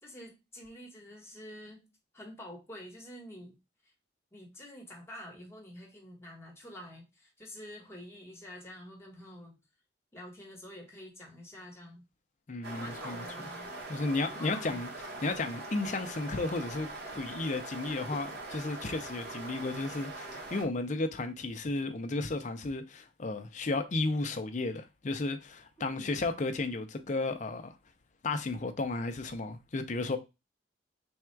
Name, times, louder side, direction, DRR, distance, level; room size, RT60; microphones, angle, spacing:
voice 1, 0.0-1.9 2.1-3.6 4.3-9.6 10.1-12.1 12.7-13.7 14.4-14.9 25.8-26.2, equal, 15° left, 1.2 m, -48 dB
voice 2, 12.5-13.3 13.9-14.9 15.2-16.9 17.2-27.8 28.2-30.2, left 3 dB, 40° left, 0.5 m, -33 dB
sound 1, 12.6-20.6, right 2 dB, 60° right, 1.1 m, -42 dB
3.5 x 2.3 x 4.4 m
head